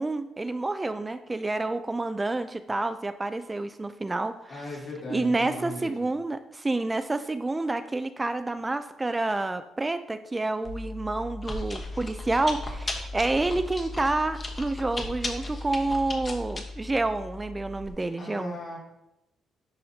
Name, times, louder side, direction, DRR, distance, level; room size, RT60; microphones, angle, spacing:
voice 1, 0.0-4.6 5.1-18.6, right 2 dB, 20° right, 10 dB, 0.3 m, -29 dB
voice 2, 4.5-5.9 18.2-18.8, left 2 dB, 60° left, -4 dB, 2.6 m, -37 dB
Chewing mastication, 10.6-17.9, left 2 dB, 30° left, 1.0 m, -36 dB
10.5 x 4.2 x 2.8 m, 0.89 s
cardioid pair, 90°, 0 cm